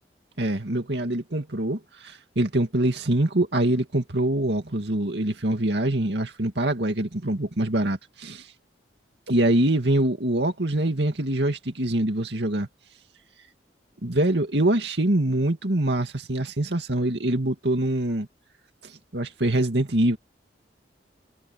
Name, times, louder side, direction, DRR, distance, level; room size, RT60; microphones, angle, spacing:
voice 1, 0.4-8.5 9.3-12.7 14.0-18.3 18.8-20.2, right 1 dB, 70° right, 2.4 m, -24 dB
head